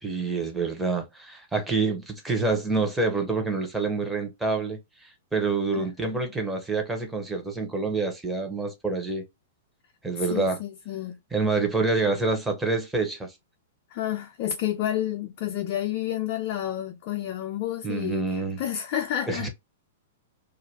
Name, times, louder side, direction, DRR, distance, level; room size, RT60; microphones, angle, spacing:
voice 1, 0.0-4.8 5.3-9.2 10.0-10.6 11.3-13.3 17.8-18.6 19.3-19.5, right 3 dB, 5° right, 0.8 m, -27 dB
voice 2, 5.7-6.3 10.2-11.2 13.9-19.5, left 11 dB, 45° left, 0.4 m, -30 dB
2.4 x 2.2 x 3.2 m
figure-of-eight pair, 110°, 0 cm